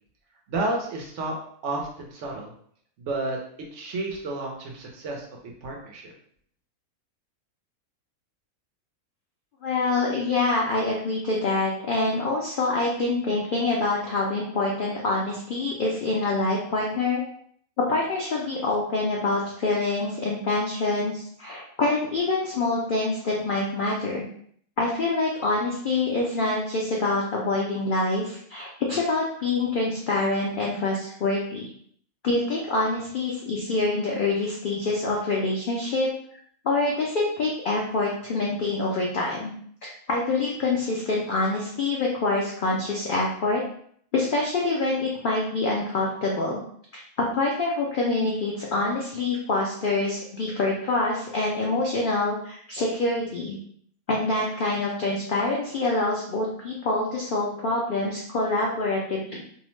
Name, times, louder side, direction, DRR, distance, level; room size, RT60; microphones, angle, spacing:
voice 1, 0.5-1.4 1.6-2.5 3.0-3.4 3.7-5.2 5.6-6.1, right 2 dB, 65° right, 0 dB, 0.9 m, -31 dB
voice 2, 9.6-17.2 17.9-24.3 24.8-31.6 32.2-36.1 36.6-39.5 39.8-43.6 44.1-46.6 46.9-47.0 47.3-53.6 54.1-59.4, left 2 dB, 85° left, -3 dB, 0.4 m, -26 dB
2.7 x 2.0 x 3.0 m, 0.63 s
omnidirectional pair, 1.5 m